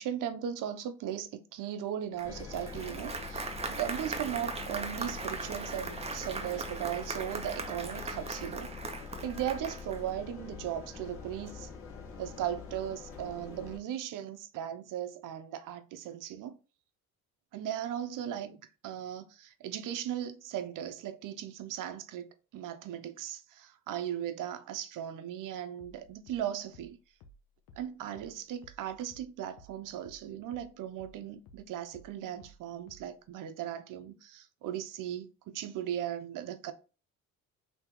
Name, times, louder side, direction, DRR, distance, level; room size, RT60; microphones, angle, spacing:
voice 1, 0.0-8.7 9.2-11.7 12.2-16.6 17.5-27.0 27.8-36.7, right 10 dB, 60° right, 0.7 m, -37 dB
Engine, 2.2-13.8, left 5 dB, 35° left, 1.0 m, -44 dB
Applause, 2.2-10.1, right 4 dB, 15° right, 0.5 m, -39 dB
sound 1, 25.8-30.7 31.0-33.2, equal, 75° left, 0.8 m, -56 dB
2.9 x 2.8 x 3.6 m
supercardioid pair, 75°, 37 cm